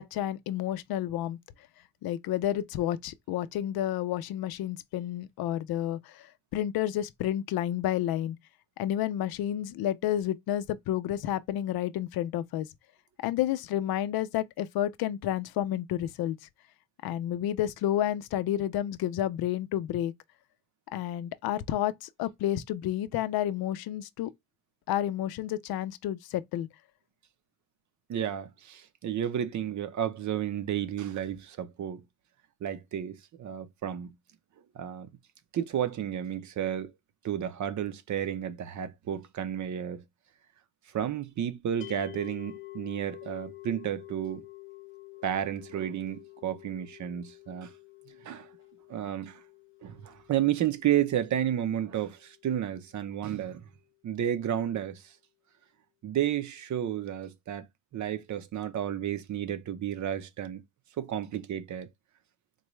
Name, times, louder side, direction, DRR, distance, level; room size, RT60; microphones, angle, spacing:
voice 1, 0.0-1.4 2.0-8.4 8.8-12.7 13.2-16.4 17.0-20.1 20.9-24.3 24.9-26.7, left 12 dB, 85° left, 0.5 m, -30 dB
voice 2, 28.1-32.0 32.6-34.1 34.7-35.1 35.5-36.9 37.2-40.0 40.9-44.4 45.2-47.7 48.2-48.5 48.9-49.4 49.8-53.6 54.0-55.0 56.0-57.7 57.9-60.6 61.0-61.9, right 10 dB, 55° right, 0.6 m, -32 dB
sound 1, 41.8-53.0, left 20 dB, 35° left, 0.4 m, -49 dB
3.9 x 2.2 x 3.0 m
cardioid pair, 135°, 36 cm